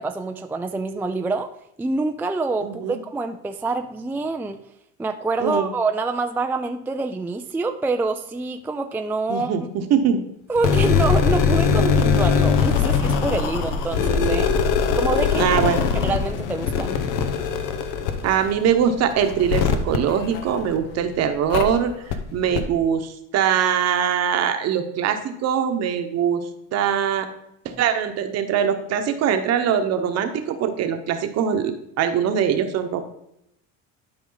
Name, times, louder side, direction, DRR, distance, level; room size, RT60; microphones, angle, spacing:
voice 1, 0.0-1.5 1.8-4.6 5.0-9.5 10.5-14.5 15.0-15.6 15.9-17.0, right 3 dB, 5° right, 5 dB, 0.3 m, -26 dB
voice 2, 2.6-3.0 5.4-5.7 9.3-9.6 9.9-10.2 15.4-15.8 18.2-21.9 22.3-26.4 26.7-27.3 27.6-33.0, right 8 dB, 55° right, 7 dB, 1.1 m, -22 dB
sound 1, 10.6-20.9 21.5-21.6 22.1-22.2 22.5-22.6, left 6 dB, 80° left, 1.1 m, -21 dB
11.5 x 5.1 x 3.9 m, 0.79 s
cardioid pair, 150°, 31 cm